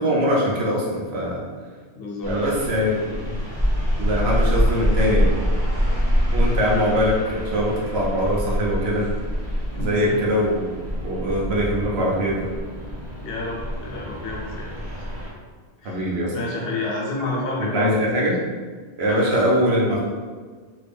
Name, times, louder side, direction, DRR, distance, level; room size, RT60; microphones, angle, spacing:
voice 1, 0.0-1.4 2.3-3.4 4.0-5.3 6.3-9.1 9.8-10.7 11.0-12.5 15.8-16.3 17.7-18.4 19.0-20.0, equal, 75° right, -4 dB, 1.0 m, -22 dB
voice 2, 1.9-2.4 9.7-10.2 13.2-15.0 15.8-17.9 18.2-18.3 19.0-19.4, left 2 dB, 65° left, -3 dB, 0.9 m, -30 dB
sound 1, 2.2-15.3, equal, 15° right, 0.7 m, -25 dB
2.8 x 2.5 x 3.4 m, 1.5 s
omnidirectional pair, 1.1 m